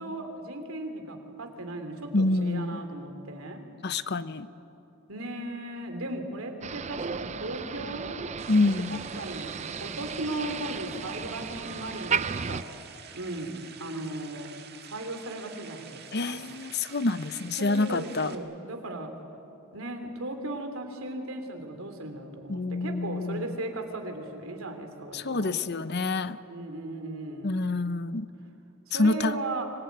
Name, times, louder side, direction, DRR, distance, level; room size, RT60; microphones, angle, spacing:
voice 1, 0.0-3.6 5.1-8.1 8.9-12.7 13.1-14.5 14.8-16.4 17.6-19.1 19.7-25.6 26.4-27.5 28.9-29.7, right 2 dB, 85° right, 5 dB, 3.2 m, -37 dB
voice 2, 2.1-2.8 3.8-4.5 8.5-9.0 16.1-18.4 22.5-23.5 25.1-26.4 27.4-28.3 28.9-29.4, left 2 dB, 50° left, 13 dB, 0.8 m, -27 dB
Motor vehicle (road), 6.6-12.6, right 5 dB, 35° right, 0.5 m, -34 dB
sound 1, 8.4-18.3, right 7 dB, 50° right, 1.9 m, -48 dB
25.0 x 20.0 x 9.5 m, 2.9 s
head